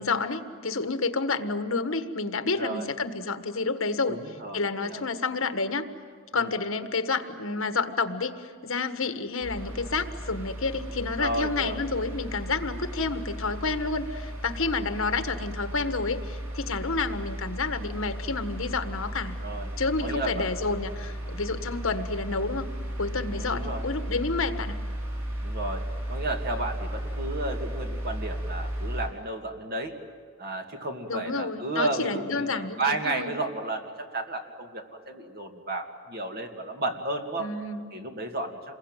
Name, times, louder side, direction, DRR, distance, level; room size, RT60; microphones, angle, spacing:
voice 1, 0.0-4.2 4.5-5.9 6.3-8.3 8.6-19.4 19.8-22.7 23.0-24.8 31.1-33.3 37.4-37.9, left 3 dB, 70° left, 9 dB, 1.5 m, -29 dB
voice 2, 2.6-2.9 4.1-5.0 6.3-6.5 11.2-11.8 13.0-13.1 19.4-19.7 20.0-20.4 23.3-23.9 25.4-29.9 30.4-37.5 37.9-38.7, right 2 dB, 45° right, 3 dB, 2.6 m, -33 dB
sound 1, 9.4-29.1, right 1 dB, 90° right, 7.3 m, -35 dB
27.5 x 22.0 x 9.1 m, 2.1 s
head